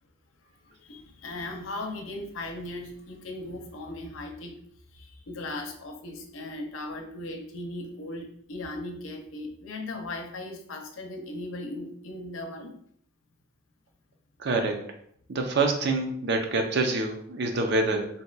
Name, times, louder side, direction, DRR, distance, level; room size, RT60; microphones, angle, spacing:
voice 1, 0.8-4.5 4.9-12.7, left 2 dB, 80° left, 4 dB, 0.6 m, -37 dB
voice 2, 14.4-14.8 15.3-18.1, right 3 dB, 55° right, 3 dB, 0.5 m, -26 dB
2.7 x 2.2 x 3.9 m, 0.65 s
head